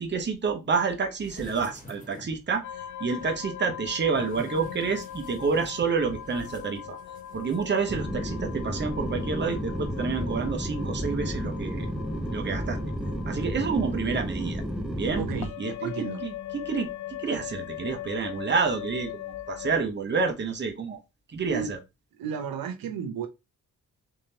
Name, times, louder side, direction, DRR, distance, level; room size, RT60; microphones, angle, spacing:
voice 1, 0.0-2.6 3.0-7.0 7.3-11.8 12.3-12.8 13.2-14.6 14.9-15.2 15.6-16.3 16.7-16.9 17.2-19.1 19.5-21.0 21.3-21.8, right 5 dB, 30° right, 0.9 m, -28 dB
sound 1, 1.2-2.5 3.1-7.6 7.9-8.0, equal, 20° left, 1.6 m, -47 dB
sound 2, 2.6-19.8, left 11 dB, 55° left, 0.5 m, -41 dB
sound 3, 7.9-15.5, equal, ahead, 0.7 m, -32 dB
voice 2, 13.5-13.9 15.2-15.5 15.8-16.2 17.3-17.5 21.5-21.7 22.1-23.3, right 7 dB, 80° right, 0.8 m, -34 dB
3.6 x 3.2 x 2.8 m
cardioid pair, 90°, 35 cm